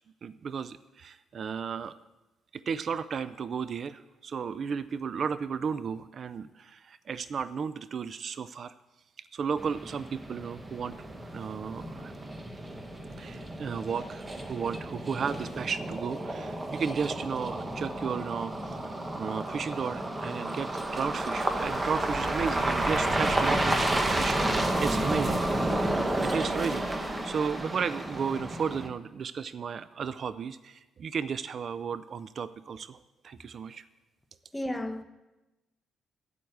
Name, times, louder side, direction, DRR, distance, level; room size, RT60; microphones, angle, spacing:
voice 1, 0.2-1.9 2.5-8.7 9.3-11.0 11.3-12.1 13.2-25.8 26.2-33.0 33.2-33.8, right 6 dB, 50° right, 0.4 m, -34 dB
sound 1, 9.6-28.9, right 1 dB, 20° right, 1.2 m, -31 dB
voice 2, 34.5-35.0, left 1 dB, 10° left, 0.9 m, -33 dB
8.6 x 8.3 x 7.8 m
cardioid pair, 90°, 0 cm